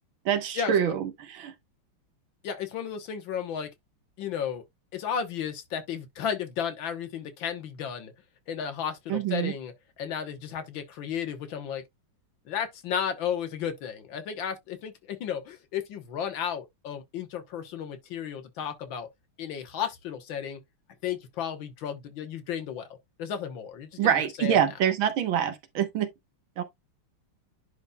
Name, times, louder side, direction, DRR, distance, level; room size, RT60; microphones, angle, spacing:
voice 1, 0.3-1.5 9.1-9.5 24.0-26.1 26.6-26.7, right 9 dB, 75° right, 1.9 m, -26 dB
voice 2, 2.4-3.7 4.2-4.6 4.9-8.1 8.5-9.7 10.0-11.8 12.5-19.1 19.4-20.6 21.0-22.9 23.2-24.1 24.4-24.6, left 8 dB, 70° left, 1.8 m, -33 dB
10.5 x 4.0 x 2.2 m
omnidirectional pair, 2.3 m